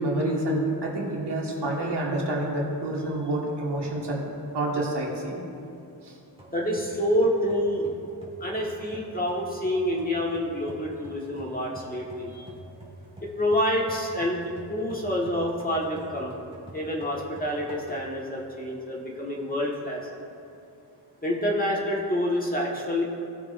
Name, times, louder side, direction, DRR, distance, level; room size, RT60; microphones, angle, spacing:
voice 1, 0.0-4.2 4.5-5.4 6.0-6.1, right 1 dB, 75° right, -2 dB, 1.8 m, -28 dB
sound 1, 6.4-18.3 18.8-18.9 19.6-20.2, right 1 dB, 15° right, 2.1 m, -47 dB
voice 2, 6.5-7.9 8.4-12.5 13.4-16.3 16.7-20.0 21.2-23.0, equal, 20° left, -3 dB, 1.4 m, -27 dB
17.0 x 6.5 x 2.6 m, 2.6 s
wide cardioid pair, 110°, 41 cm